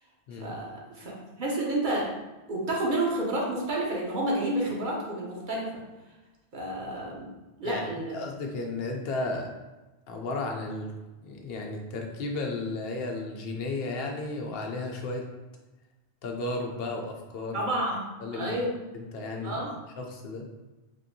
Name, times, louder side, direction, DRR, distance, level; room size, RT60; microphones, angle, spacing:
voice 1, 0.4-1.1 1.4-2.1 2.5-5.8 6.5-7.3 7.6-8.1 17.5-18.0 18.3-18.7 19.4-19.7, right 1 dB, 55° right, -3 dB, 0.9 m, -30 dB
voice 2, 8.1-9.5 10.1-10.9 11.2-15.3 16.2-17.6 18.2-18.5 18.9-19.6 20.0-20.4, left 2 dB, 70° left, 2 dB, 0.8 m, -33 dB
3.5 x 2.6 x 2.6 m, 1.1 s
omnidirectional pair, 1.1 m